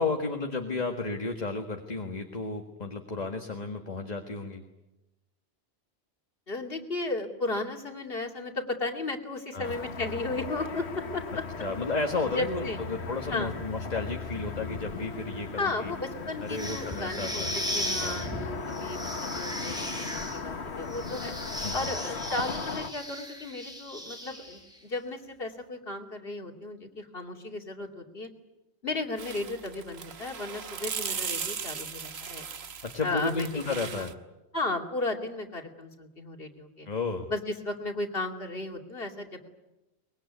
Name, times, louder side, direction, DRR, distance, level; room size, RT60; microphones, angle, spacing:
voice 1, 0.0-4.6 9.5-9.7 11.6-15.9 16.4-17.5 18.0-18.2 21.6-21.7 32.9-34.1 36.9-37.3, left 3 dB, 40° left, 4 dB, 1.8 m, -32 dB
voice 2, 6.5-11.4 12.3-12.8 13.3-13.5 15.5-21.3 21.7-28.3 28.8-32.4 33.0-34.1 34.5-36.9 37.3-39.5, left 2 dB, 60° left, 2 dB, 3.0 m, -35 dB
Car passing by / Traffic noise roadway noise, 9.6-22.9, left 4 dB, 80° left, 1.6 m, -37 dB
sound 1, 16.5-24.8, equal, 5° right, 6.3 m, -37 dB
sound 2, 29.2-34.1, right 6 dB, 75° right, 1.4 m, -37 dB
24.0 x 21.5 x 9.5 m, 0.99 s
omnidirectional pair, 1.1 m